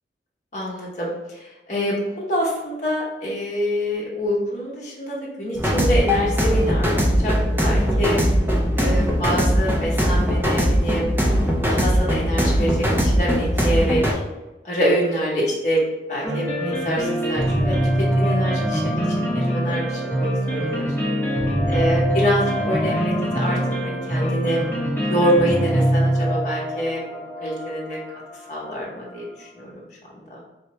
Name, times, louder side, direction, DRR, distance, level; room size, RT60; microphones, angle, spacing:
voice 1, 0.5-6.9 7.2-7.4 7.6-8.2 8.7-11.1 11.7-14.0 14.6-15.8 16.1-20.9 21.7-23.6 23.8-24.6 25.0-27.0 27.4-28.0 28.5-29.7 30.3-30.4, equal, 45° left, -5 dB, 0.9 m, -26 dB
sound 1, 5.6-14.1, equal, 10° right, 0.5 m, -20 dB
sound 2, 16.2-29.2, equal, 10° left, 0.8 m, -23 dB
4.3 x 2.2 x 2.9 m, 1.0 s
head